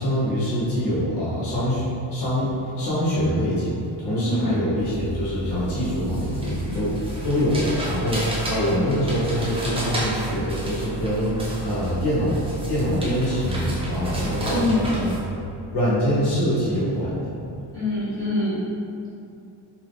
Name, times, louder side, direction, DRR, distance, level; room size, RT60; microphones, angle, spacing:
voice 1, 0.0-1.8 2.1-12.4 12.7-15.4 15.7-17.3, equal, 60° left, -9 dB, 1.0 m, -24 dB
voice 2, 4.2-4.6 14.5-14.9 17.7-18.6, left 2 dB, 10° left, -13 dB, 1.4 m, -24 dB
sound 1, 4.8-15.2, right 2 dB, 15° right, 0.3 m, -32 dB
3.5 x 2.7 x 2.5 m, 2.6 s
cardioid pair, 175°, 45 cm